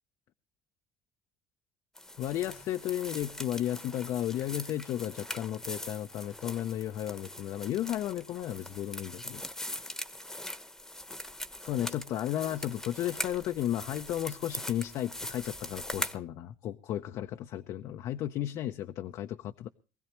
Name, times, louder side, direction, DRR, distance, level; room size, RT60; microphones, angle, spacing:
sound 1, 1.9-16.2, left 1 dB, 5° left, 1.0 m, -41 dB
voice 1, 2.2-9.4 11.6-19.7, left 12 dB, 65° left, 0.6 m, -34 dB
23.0 x 16.0 x 3.0 m
cardioid pair, 115°, 7 cm